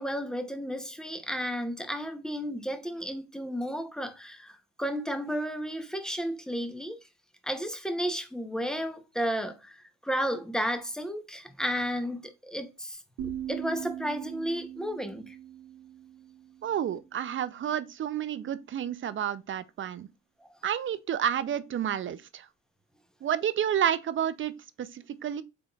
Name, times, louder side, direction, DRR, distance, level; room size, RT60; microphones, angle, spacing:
voice 1, 0.0-7.0 7.4-13.0 13.5-15.4 20.4-20.5, equal, ahead, 0.7 m, -33 dB
sound 1, 13.2-17.1, right 10 dB, 85° right, 0.8 m, -40 dB
voice 2, 16.6-20.1 20.6-22.5 23.2-25.4, right 9 dB, 40° right, 0.4 m, -30 dB
3.9 x 3.6 x 2.2 m
cardioid pair, 90°, 30 cm